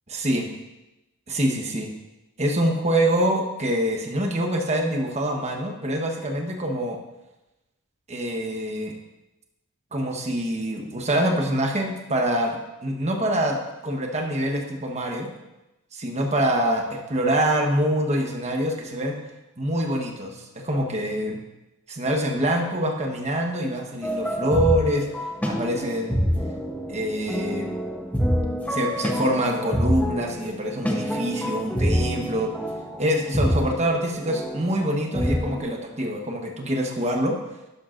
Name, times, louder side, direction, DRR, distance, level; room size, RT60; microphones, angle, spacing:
voice 1, 0.1-0.4 1.3-1.9 2.4-7.0 8.1-8.9 9.9-13.6 13.8-15.3 15.9-19.1 19.6-21.4 21.9-25.0 25.5-26.2 26.9-27.8 28.7-32.5 33.0-37.4, right 1 dB, 30° right, 2 dB, 1.1 m, -25 dB
sound 1, 24.0-35.6, equal, 5° left, 0.9 m, -27 dB
12.0 x 9.4 x 2.6 m, 0.99 s
head